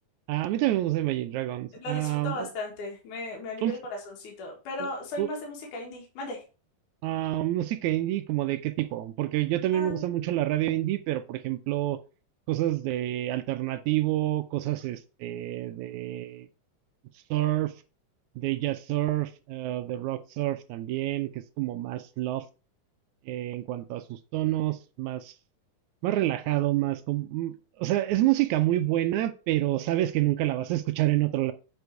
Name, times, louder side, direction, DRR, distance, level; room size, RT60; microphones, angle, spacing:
voice 1, 0.3-2.5 3.6-3.8 4.8-4.9 5.2-5.3 7.0-12.0 12.5-16.5 17.3-17.7 18.4-22.5 23.3-25.3 26.0-31.5, right 15 dB, 80° right, 1.7 m, -28 dB
voice 2, 1.8-3.8 4.1-6.4 9.7-10.4, left 2 dB, 70° left, 3.2 m, -36 dB
8.3 x 4.4 x 4.6 m
omnidirectional pair, 3.8 m